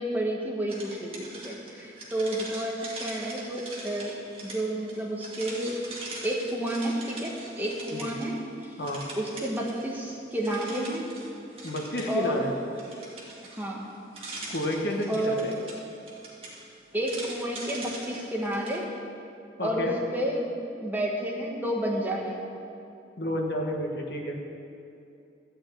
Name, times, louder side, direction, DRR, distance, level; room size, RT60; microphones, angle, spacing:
voice 1, 0.0-4.1 4.4-5.8 6.2-8.8 9.2-11.0 12.1-12.4 13.6-13.9 15.1-15.4 16.9-18.8 19.6-20.5 20.8-22.4, right 1 dB, 10° right, -2 dB, 1.3 m, -30 dB
sound 1, 0.7-8.4 8.6-10.0 10.3-18.8, right 2 dB, 30° right, 2.1 m, -42 dB
voice 2, 11.6-12.6 14.5-15.5 19.6-20.0 23.2-24.4, equal, 65° left, 1 dB, 1.5 m, -30 dB
13.0 x 6.2 x 8.5 m, 2.6 s
head